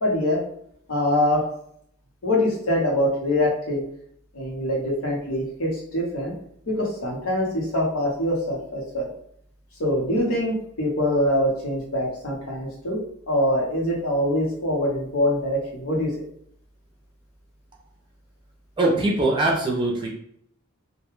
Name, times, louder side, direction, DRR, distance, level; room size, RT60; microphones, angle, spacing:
voice 1, 0.0-0.4 0.9-1.4 2.2-3.8 4.3-6.3 6.7-9.1 9.8-13.0 13.3-16.1, left 1 dB, 85° left, -2 dB, 0.9 m, -24 dB
voice 2, 18.8-20.1, right 2 dB, 20° right, -2 dB, 0.4 m, -22 dB
2.2 x 2.2 x 3.0 m, 0.68 s
head